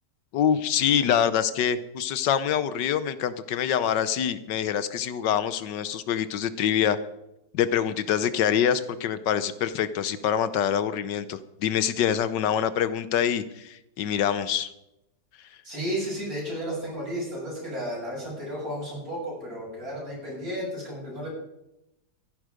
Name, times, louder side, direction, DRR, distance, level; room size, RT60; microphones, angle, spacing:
voice 1, 0.3-7.0 7.5-14.7, left 9 dB, 85° left, 14 dB, 1.5 m, -25 dB
voice 2, 15.6-21.3, equal, 55° right, -4 dB, 7.5 m, -33 dB
14.5 x 11.0 x 5.2 m, 0.88 s
omnidirectional pair, 1.8 m